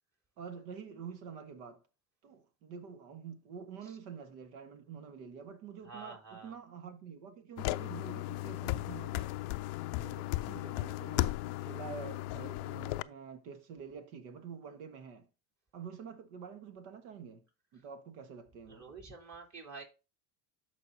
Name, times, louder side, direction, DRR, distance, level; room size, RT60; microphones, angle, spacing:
voice 1, 0.4-1.8 2.2-9.3 10.0-15.3 15.7-17.4 17.7-18.8, right 6 dB, 70° right, 1.5 m, -47 dB
voice 2, 5.8-6.6 10.0-10.9 17.8-17.9 18.7-19.8, right 4 dB, 35° right, 3.4 m, -50 dB
sound 1, 7.6-13.0, left 18 dB, 55° left, 0.5 m, -36 dB
13.0 x 4.8 x 2.7 m
hypercardioid pair, 80°, 47 cm